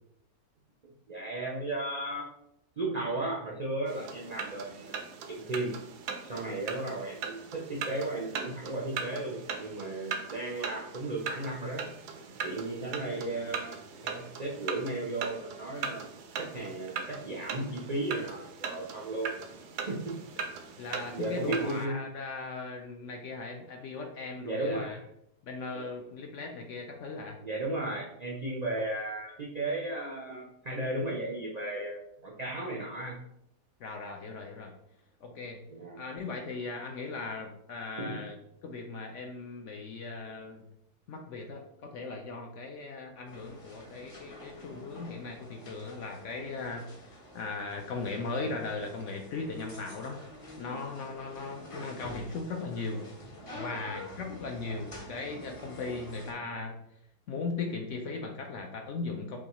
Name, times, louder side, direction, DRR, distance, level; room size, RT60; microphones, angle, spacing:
voice 1, 0.8-2.3 2.8-5.0 5.3-5.8 6.2-11.9 12.4-16.1 16.4-19.3 19.8-20.2 21.1-22.0 24.4-25.0 25.7-25.9 27.4-33.2 35.7-36.0 38.0-38.2 51.4-51.5, right 2 dB, 70° right, -3 dB, 0.4 m, -35 dB
sound 1, 3.9-21.9, right 6 dB, 85° right, 1.2 m, -40 dB
voice 2, 20.8-25.0 25.4-27.4 33.8-34.7 35.2-35.6 36.0-38.4 38.6-40.6 41.1-50.2 50.6-56.8 57.3-59.4, left 3 dB, 70° left, 2 dB, 0.7 m, -38 dB
sound 2, 43.3-56.3, left 1 dB, 35° left, 0.5 m, -47 dB
6.1 x 2.3 x 2.9 m, 0.78 s
omnidirectional pair, 1.6 m